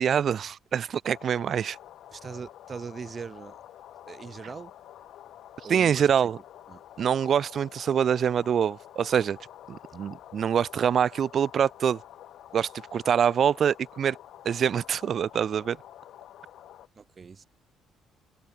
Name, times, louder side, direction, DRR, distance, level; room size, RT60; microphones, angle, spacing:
voice 1, 0.0-1.8 5.7-6.4 7.0-9.4 9.7-12.0 12.5-14.2 14.4-15.8, right 8 dB, 50° right, 0.4 m, -25 dB
sound 1, 1.1-16.9, left 12 dB, 70° left, 2.9 m, -49 dB
voice 2, 2.1-3.6 4.1-4.7 5.6-6.0 6.7-6.8 17.0-17.4, right 5 dB, 35° right, 0.8 m, -40 dB
cardioid pair, 115°, 0 cm